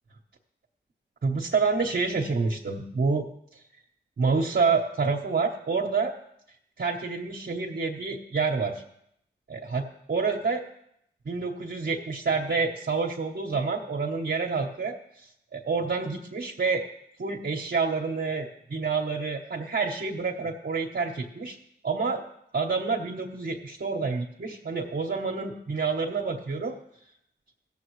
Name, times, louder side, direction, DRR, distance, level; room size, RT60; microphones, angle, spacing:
voice 1, 1.2-3.3 4.2-6.1 6.8-8.8 9.5-10.6 11.3-15.3 15.5-16.8 17.2-21.6 21.8-22.2 22.5-26.8, right 4 dB, 60° right, -2 dB, 1.1 m, -28 dB
16.5 x 7.4 x 3.2 m, 0.74 s
cardioid pair, 45°, 20 cm